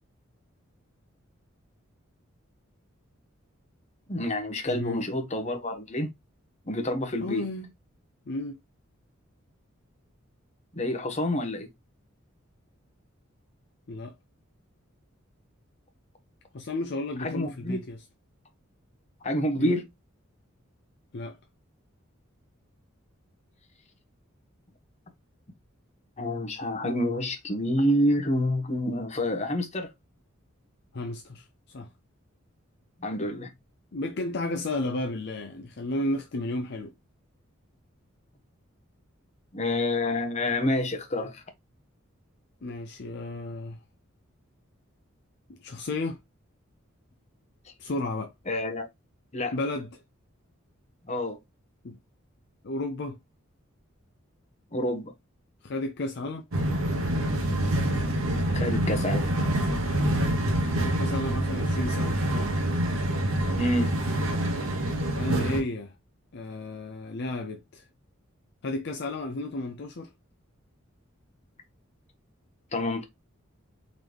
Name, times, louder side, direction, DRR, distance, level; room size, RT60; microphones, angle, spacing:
voice 1, 4.1-6.1 6.7-7.4 10.7-11.7 17.2-17.8 19.2-19.8 26.2-29.9 33.0-33.5 39.5-41.4 48.5-48.9 49.3-49.5 51.1-51.4 54.7-55.1 58.5-59.3 63.5-63.9 72.7-73.0, left 1 dB, 35° left, 1.0 m, -28 dB
voice 2, 4.7-5.1 7.2-7.7 8.3-8.6 13.9-14.1 16.5-18.0 19.6-19.8 21.1-21.4 30.9-31.9 33.9-36.9 42.6-43.8 45.5-46.2 47.8-48.3 49.5-49.9 51.8-52.0 52.6-53.2 55.6-56.5 60.8-62.4 65.1-65.9 66.3-67.8 68.6-70.1, left 2 dB, 55° left, 0.5 m, -33 dB
sound 1, 56.5-65.6, right 1 dB, 80° right, 1.0 m, -26 dB
3.9 x 3.1 x 3.3 m
head